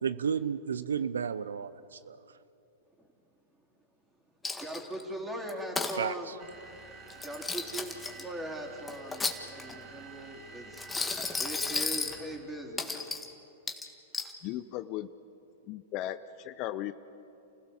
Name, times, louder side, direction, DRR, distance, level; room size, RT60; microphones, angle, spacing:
voice 1, 0.0-2.4 5.9-6.4, right 7 dB, 85° right, 15 dB, 0.6 m, -33 dB
Coin (dropping), 4.4-5.0 5.5-6.0 7.1-8.2 8.9-9.8 10.7-12.2 12.8-13.3 13.7-14.3, left 3 dB, 10° left, 1.8 m, -33 dB
voice 2, 4.6-6.3 7.2-10.8 11.4-13.1, right 1 dB, 10° right, -1 dB, 4.0 m, -40 dB
sound 1, 6.4-12.6, right 3 dB, 30° right, 3.2 m, -50 dB
voice 3, 14.4-15.1 15.7-16.9, left 13 dB, 45° left, 13 dB, 0.7 m, -36 dB
29.0 x 16.0 x 7.2 m, 2.9 s
hypercardioid pair, 110°, 0 cm